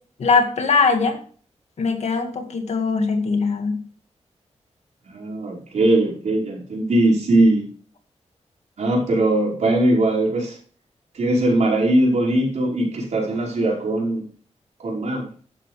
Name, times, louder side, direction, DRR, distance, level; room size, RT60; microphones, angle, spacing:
voice 1, 0.2-1.2 1.8-3.8, left 4 dB, 65° left, 5 dB, 2.0 m, -21 dB
voice 2, 5.1-7.7 8.8-10.6 11.1-14.3 14.8-15.3, right 1 dB, 75° right, -4 dB, 5.3 m, -20 dB
11.5 x 9.9 x 3.4 m, 0.44 s
wide cardioid pair, 140°, 12 cm